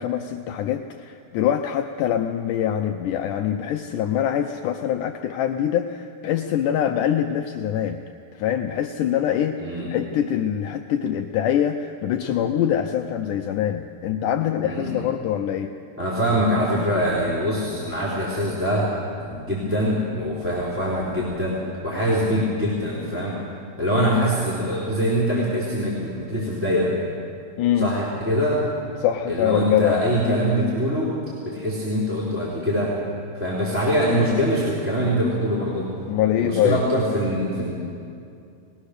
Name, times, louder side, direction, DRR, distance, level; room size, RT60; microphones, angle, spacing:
voice 1, 0.0-8.0 8.3-9.6 9.9-15.7 23.9-24.3 27.6-27.9 29.0-30.0 34.0-34.4 36.1-36.8, left 10 dB, 75° left, 5 dB, 2.1 m, -24 dB
voice 2, 14.6-15.1 16.0-18.9 19.3-21.6 21.8-23.4 23.8-26.9 27.8-28.6 29.3-31.1 31.4-32.9 33.3-35.9 36.4-37.7, equal, 5° right, -7 dB, 3.2 m, -23 dB
21.5 x 18.5 x 6.5 m, 2.5 s
omnidirectional pair, 3.9 m